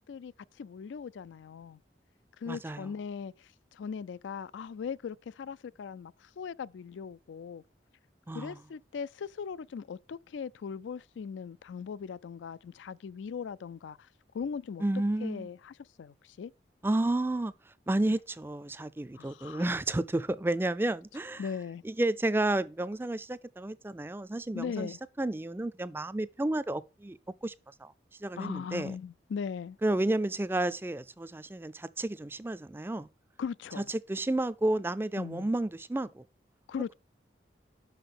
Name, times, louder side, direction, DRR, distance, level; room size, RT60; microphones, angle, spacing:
voice 1, 0.6-1.8 2.4-7.6 8.3-14.1 14.3-14.8 15.2-16.5 19.1-19.6 21.4-21.8 24.5-25.0 28.4-29.8 33.4-33.9 35.2-35.5 36.7-36.9, left 6 dB, 90° left, 0.4 m, -39 dB
voice 2, 2.5-2.9 8.3-8.6 14.8-15.5 16.8-17.5 17.9-21.4 21.8-24.9 25.2-27.5 27.8-27.9 28.2-29.0 29.8-33.1 33.8-36.2, right 1 dB, 10° right, 0.3 m, -31 dB
6.1 x 5.9 x 6.9 m
head